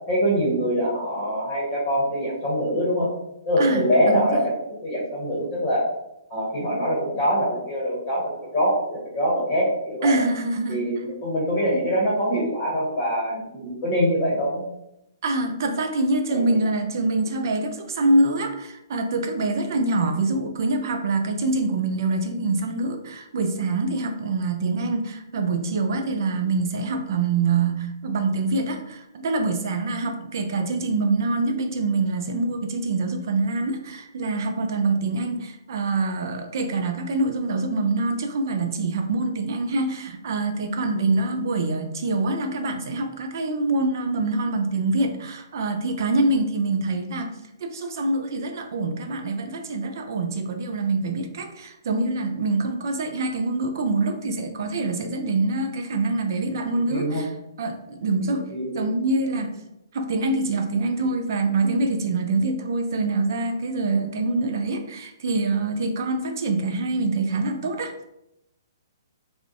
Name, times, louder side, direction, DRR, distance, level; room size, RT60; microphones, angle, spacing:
voice 1, 0.1-3.1 3.5-4.4 4.8-5.8 6.3-10.2 10.7-14.6 16.3-16.4 30.6-30.7 56.9-57.2 58.5-58.7, equal, 25° left, -6 dB, 1.0 m, -24 dB
voice 2, 3.6-4.5 10.0-10.8 15.2-47.3 47.6-57.3 57.6-58.5 58.7-59.5 59.9-68.0, right 3 dB, 60° right, 6 dB, 0.4 m, -25 dB
2.5 x 2.0 x 2.4 m, 0.83 s
hypercardioid pair, 140°, 2 cm